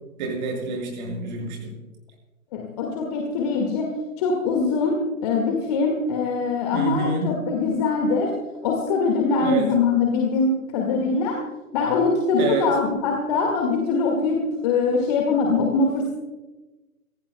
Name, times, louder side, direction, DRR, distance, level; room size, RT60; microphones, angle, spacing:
voice 1, 0.2-1.7 6.7-7.3 9.4-9.7 12.4-12.7, right 3 dB, 30° right, 0 dB, 5.9 m, -27 dB
voice 2, 2.5-3.9 4.2-4.9 5.2-8.3 8.6-11.4 11.7-16.1, left 4 dB, 25° left, 1 dB, 1.9 m, -22 dB
26.5 x 17.0 x 2.3 m, 1.1 s
figure-of-eight pair, 130°, 44 cm